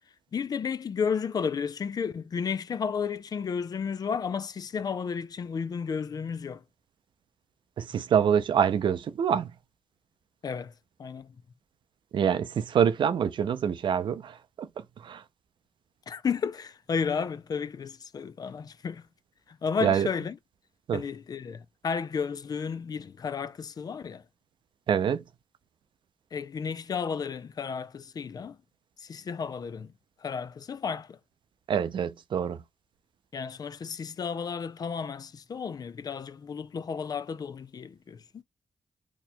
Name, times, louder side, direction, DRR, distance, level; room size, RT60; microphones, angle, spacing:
voice 1, 0.3-6.6 10.4-10.7 11.0-11.3 16.1-19.1 19.5-20.4 20.9-24.2 26.3-28.6 29.0-29.9 30.2-31.2 33.3-38.4, left 6 dB, 50° left, 0.3 m, -33 dB
voice 2, 7.8-9.5 12.1-15.2 19.8-20.1 20.9-21.0 24.9-25.2 31.7-32.6, right 8 dB, 80° right, 0.4 m, -26 dB
2.9 x 2.2 x 4.1 m
wide cardioid pair, 95°, 8 cm